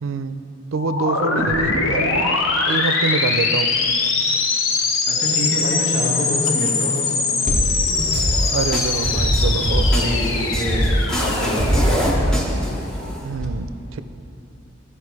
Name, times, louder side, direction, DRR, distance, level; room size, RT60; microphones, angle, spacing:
voice 1, 0.0-0.4 0.7-3.7 8.5-10.1 13.2-14.0, right 4 dB, 85° right, 11 dB, 0.4 m, -26 dB
sound 1, 0.8-12.4, left 4 dB, 90° left, 0.9 m, -22 dB
voice 2, 5.1-8.1 9.0-13.3, left 1 dB, 65° left, -3 dB, 1.4 m, -28 dB
sound 2, 7.5-13.4, equal, 5° left, 1.1 m, -21 dB
14.0 x 5.6 x 4.7 m, 2.9 s
head